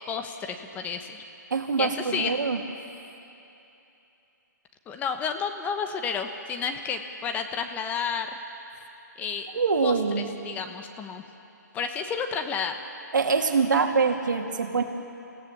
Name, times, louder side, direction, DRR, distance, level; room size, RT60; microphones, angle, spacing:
voice 1, 0.1-1.2 1.8-2.4 4.9-8.3 9.2-11.2 11.7-12.7, left 6 dB, 15° left, 6 dB, 1.1 m, -31 dB
voice 2, 1.5-2.6 9.5-10.3 13.1-14.8, right 5 dB, 80° right, 4 dB, 2.4 m, -24 dB
29.0 x 16.5 x 7.1 m, 2.9 s
hypercardioid pair, 145°, 10 cm